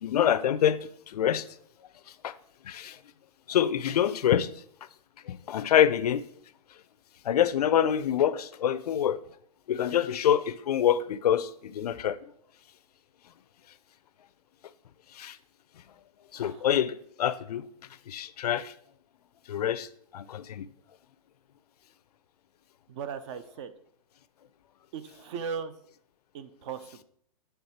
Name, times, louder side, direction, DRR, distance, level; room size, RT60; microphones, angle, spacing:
voice 1, 0.0-1.5 2.2-2.3 2.6-3.0 3.5-4.5 5.3-6.3 7.2-9.2 9.7-12.2 15.1-15.4 16.3-17.7 18.1-18.7 19.5-20.7, left 10 dB, 90° left, 0.4 m, -26 dB
voice 2, 16.3-16.7 22.9-23.7 24.9-25.7 26.3-27.0, right 6 dB, 50° right, 0.6 m, -38 dB
8.0 x 3.5 x 4.2 m
hypercardioid pair, 145°, 19 cm